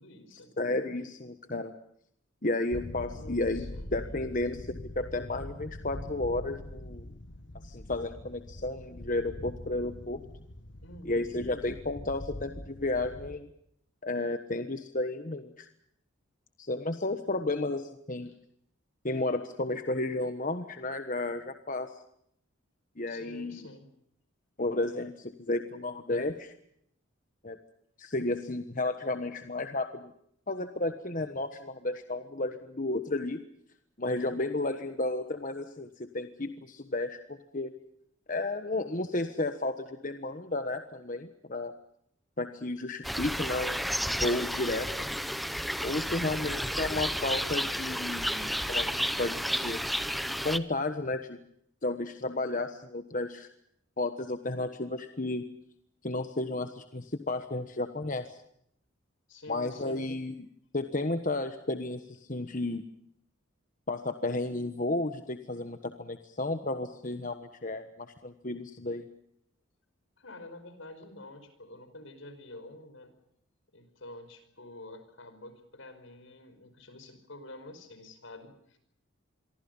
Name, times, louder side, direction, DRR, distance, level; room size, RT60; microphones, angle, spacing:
voice 1, 0.0-0.6 3.1-3.9 10.8-11.3 18.3-18.4 23.1-23.9 34.2-34.5 46.1-46.5 59.3-60.1 70.2-73.1 73.7-78.8, left 1 dB, 75° left, 10 dB, 5.2 m, -48 dB
voice 2, 0.6-1.7 2.4-3.7 3.9-7.1 7.6-10.2 11.0-13.5 14.0-15.7 16.6-18.3 19.0-21.9 23.0-23.6 24.6-26.5 27.4-27.6 28.0-30.1 30.5-33.4 34.0-37.7 38.3-41.7 42.4-45.1 45.8-49.8 50.3-51.4 51.8-53.5 54.0-55.4 56.0-58.4 59.5-60.5 60.7-62.8 63.9-69.1, left 2 dB, 40° left, 8 dB, 1.3 m, -33 dB
sound 1, 2.7-13.4, left 1 dB, 60° left, 1.6 m, -43 dB
sound 2, 43.0-50.6, equal, ahead, 0.9 m, -32 dB
27.0 x 23.5 x 5.5 m, 0.72 s
head